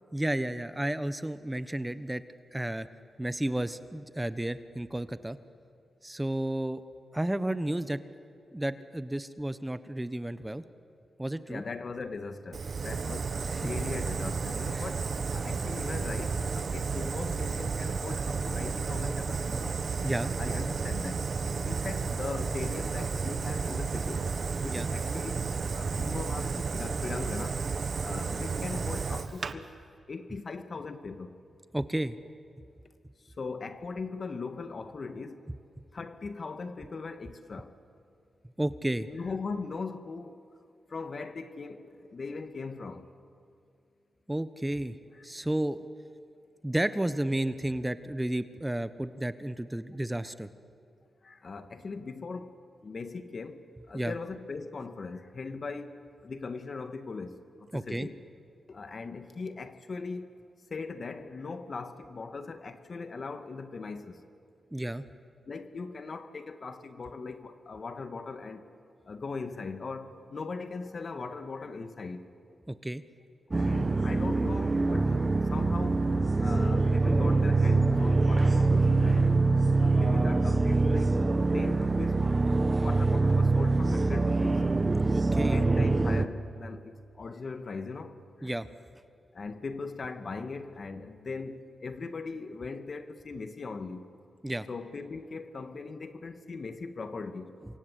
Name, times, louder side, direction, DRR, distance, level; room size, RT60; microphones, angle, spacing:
voice 1, 0.1-2.2 2.5-2.9 3.2-5.4 6.0-6.8 7.1-8.0 8.5-10.6 11.2-11.6 13.5-13.6 14.7-14.8 20.0-20.3 24.6-24.9 31.7-32.2 38.6-39.1 44.3-45.0 45.2-45.8 46.6-50.5 53.9-54.1 57.7-58.1 64.7-65.0 72.7-73.0 85.1-85.6 88.4-88.7 94.4-94.7, right 1 dB, 15° right, 1.2 m, -32 dB
voice 2, 11.5-19.8 20.4-21.3 21.6-24.3 24.6-25.4 25.7-27.6 28.0-29.7 30.1-31.4 33.2-35.5 35.9-37.8 39.1-40.4 40.9-43.1 45.2-45.3 51.2-52.5 52.8-56.0 56.2-58.2 58.7-60.3 60.7-64.2 65.5-68.6 69.0-72.3 73.5-75.2 75.5-76.0 76.4-79.4 79.8-81.2 81.5-82.2 82.6-84.6 85.5-88.5 89.3-94.1 94.7-97.5, left 4 dB, 55° left, 1.8 m, -39 dB
Fire, 12.5-29.5, right 5 dB, 60° right, 1.3 m, -32 dB
sound 1, 73.5-86.3, right 3 dB, 35° right, 1.4 m, -24 dB
28.0 x 25.0 x 8.4 m
supercardioid pair, 50°, 0 cm